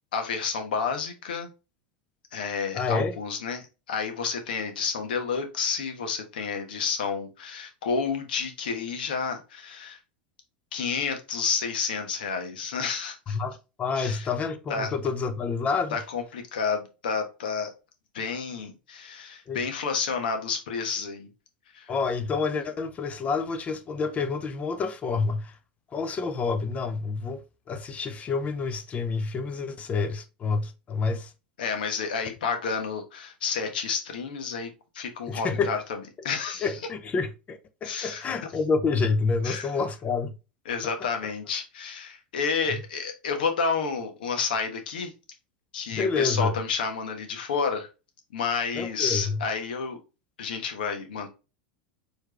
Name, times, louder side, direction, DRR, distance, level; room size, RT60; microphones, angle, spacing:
voice 1, 0.1-1.5 2.3-10.0 10.7-13.4 14.0-14.3 14.7-14.9 15.9-17.7 18.1-21.3 21.7-21.9 31.6-34.7 34.9-35.8 36.2-36.7 37.8-38.2 39.4-39.7 40.7-45.1 45.7-47.9 48.3-50.0 50.4-51.3, left 5 dB, 70° left, 1.2 m, -30 dB
voice 2, 2.7-3.2 13.3-16.0 19.5-19.6 21.9-25.6 25.9-31.3 35.3-35.7 36.6-40.4 40.8-40.9 42.7-42.8 45.9-46.5 48.7-49.4, left 4 dB, 25° left, 0.7 m, -28 dB
4.6 x 3.3 x 3.0 m
hypercardioid pair, 90°, 5 cm